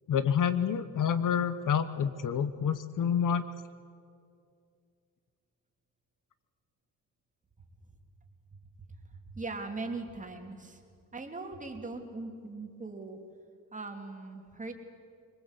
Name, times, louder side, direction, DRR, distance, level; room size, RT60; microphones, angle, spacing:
voice 1, 0.1-3.5, left 8 dB, 55° left, 12 dB, 1.0 m, -28 dB
voice 2, 9.1-10.8 11.1-13.2 13.7-14.7, right 3 dB, 20° right, 3 dB, 2.9 m, -40 dB
25.0 x 22.0 x 8.2 m, 2.4 s
cardioid pair, 115°, 38 cm